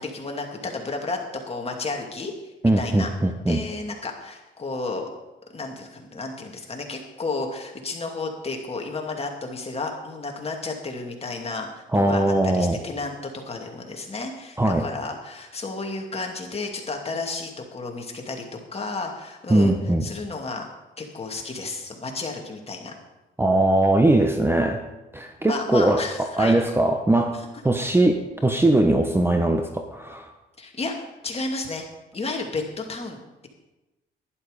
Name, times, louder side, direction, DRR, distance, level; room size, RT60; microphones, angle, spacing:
voice 1, 0.0-2.3 2.8-3.1 3.5-5.1 5.5-18.4 18.7-19.7 20.0-20.7 21.0-22.9 25.4-26.6 30.6-30.9 31.2-31.8 32.1-33.5, left 3 dB, 30° left, 2 dB, 2.4 m, -32 dB
voice 2, 2.6-3.6 11.9-12.8 14.6-14.9 19.5-20.0 23.4-24.8 25.1-27.4 27.6-30.3, right 1 dB, 10° right, 5 dB, 0.9 m, -20 dB
11.5 x 11.0 x 5.2 m, 1.0 s
cardioid pair, 90°, 20 cm